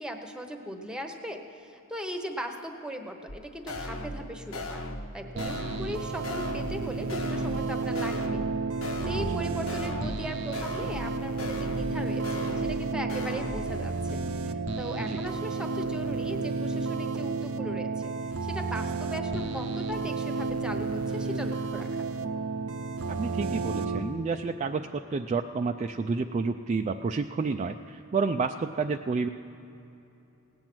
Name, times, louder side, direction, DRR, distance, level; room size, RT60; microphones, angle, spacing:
voice 1, 0.0-4.8 5.1-8.4 9.0-17.9 18.4-22.0, equal, 5° right, 5 dB, 0.9 m, -38 dB
sound 1, 3.3-3.4 3.7-4.2 4.5-5.1 5.4-5.9 6.2-6.8 7.1-7.7 7.9-8.5 8.8-9.4 9.7-10.2 10.5-11.1 11.4-11.9 12.2-12.8 13.1-13.6, left 1 dB, 75° left, 1.2 m, -37 dB
sound 2, 5.4-24.0, right 4 dB, 85° right, 0.7 m, -32 dB
voice 2, 9.1-9.4 15.1-15.2 23.1-29.3, right 4 dB, 30° right, 5 dB, 0.3 m, -30 dB
18.0 x 8.8 x 6.1 m, 2.9 s
head